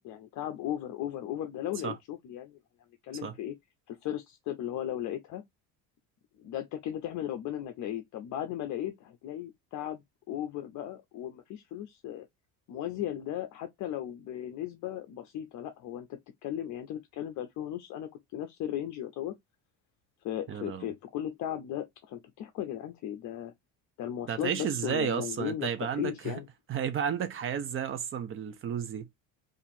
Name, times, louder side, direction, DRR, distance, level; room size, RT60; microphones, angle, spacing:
voice 1, 0.0-2.6 3.0-3.5 3.9-5.4 6.4-10.0 10.3-12.3 12.7-19.3 20.2-23.5 24.0-26.4, left 11 dB, 50° left, 0.6 m, -36 dB
voice 2, 20.5-20.9 24.3-26.3 26.7-29.0, right 8 dB, 35° right, 0.7 m, -32 dB
2.8 x 2.6 x 4.2 m
cardioid pair, 135°, 38 cm